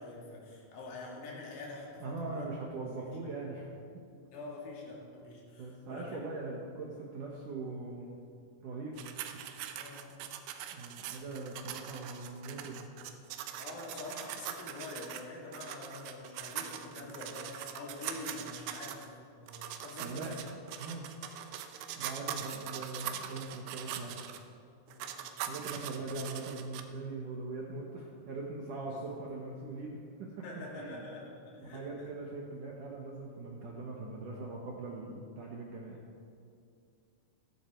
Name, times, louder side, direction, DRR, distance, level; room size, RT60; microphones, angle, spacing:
voice 1, 0.0-2.5 3.0-3.1 4.3-6.3 9.7-10.3 13.6-19.1 19.4-20.4 21.3-21.4 21.8-22.0 24.9-25.4 28.9-29.2 30.4-32.1, left 2 dB, 85° left, -4 dB, 5.1 m, -46 dB
voice 2, 2.0-3.7 5.6-8.2 8.6-9.4 10.7-12.9 20.0-20.4 20.8-21.1 22.0-24.2 25.5-30.3 30.8-31.1 31.6-36.0, right 3 dB, 70° right, -2 dB, 1.9 m, -41 dB
sound 1, 9.0-15.3 15.5-19.1 19.5-24.4 24.9-26.8, right 10 dB, 90° right, 3.3 m, -42 dB
15.0 x 14.5 x 4.5 m, 2.4 s
omnidirectional pair, 5.4 m